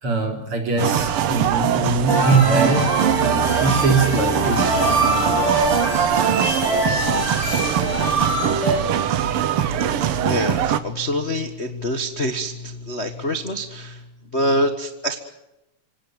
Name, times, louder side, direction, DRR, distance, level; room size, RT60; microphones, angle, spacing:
voice 1, 0.0-2.9 3.2-5.2, right 3 dB, 40° right, 3 dB, 4.5 m, -22 dB
sound 1, 0.8-10.8, right 9 dB, 75° right, 1.3 m, -22 dB
sound 2, 2.1-8.7, equal, 40° left, 8.9 m, -25 dB
sound 3, 3.1-8.7 9.0-9.1, left 3 dB, 15° left, 3.6 m, -33 dB
voice 2, 9.6-14.0 14.3-15.2, equal, 70° left, 5 dB, 0.6 m, -26 dB
26.0 x 17.5 x 9.5 m, 0.93 s
omnidirectional pair, 3.9 m